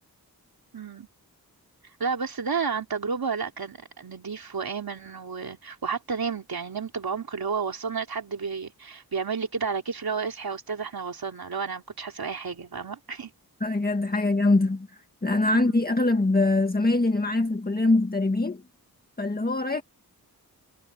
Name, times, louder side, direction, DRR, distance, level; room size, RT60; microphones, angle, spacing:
voice 1, 0.7-1.1 2.0-13.3 15.5-15.8, right 5 dB, 70° right, 3.2 m, -31 dB
voice 2, 13.6-14.9 15.2-18.6 19.2-19.8, left 2 dB, 25° left, 1.7 m, -23 dB
wide cardioid pair, 90°, 38 cm